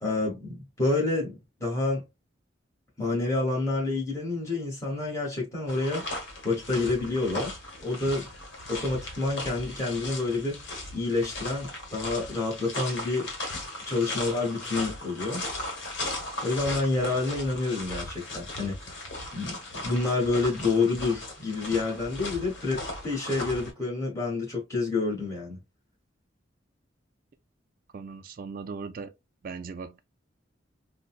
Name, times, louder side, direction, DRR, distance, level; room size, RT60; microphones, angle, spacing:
voice 1, 0.0-2.0 3.0-6.0 6.4-8.3 8.7-10.6 10.9-13.3 13.8-15.4 16.4-18.8 19.3-25.6, left 3 dB, 15° left, 1.5 m, -28 dB
sound 1, 5.7-23.7, left 2 dB, 70° left, 1.2 m, -37 dB
voice 2, 27.9-29.1 29.4-30.0, right 5 dB, 45° right, 0.3 m, -38 dB
3.9 x 2.2 x 2.3 m
head